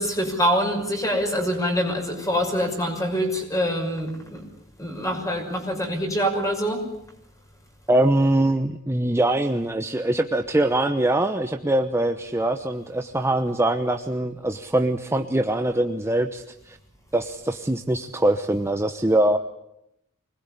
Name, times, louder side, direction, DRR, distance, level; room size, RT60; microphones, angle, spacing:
voice 1, 0.0-4.4 4.8-6.8, equal, 15° left, 3 dB, 6.0 m, -25 dB
voice 2, 7.9-16.8 17.1-19.4, right 1 dB, 10° right, 7 dB, 0.9 m, -23 dB
25.0 x 20.5 x 9.9 m, 0.82 s
head